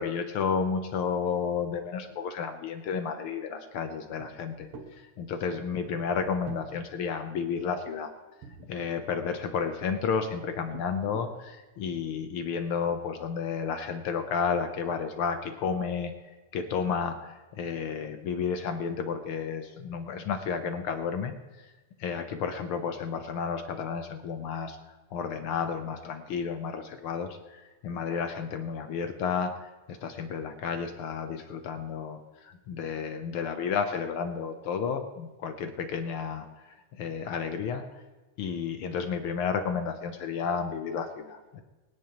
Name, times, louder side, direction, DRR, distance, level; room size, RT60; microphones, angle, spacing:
voice 1, 0.0-4.7 5.0-8.1 8.7-16.1 16.5-21.3 22.0-24.8 25.1-37.8 38.4-41.6, left 6 dB, 70° left, 7 dB, 1.3 m, -32 dB
sound 1, 4.2-4.3 4.6-4.9 5.9-6.7 8.4-9.2 9.8-10.1 10.7-11.4 12.2-12.3 12.7-13.0, right 4 dB, 55° right, 2.0 m, -46 dB
23.0 x 9.8 x 3.0 m, 1.2 s
omnidirectional pair, 3.3 m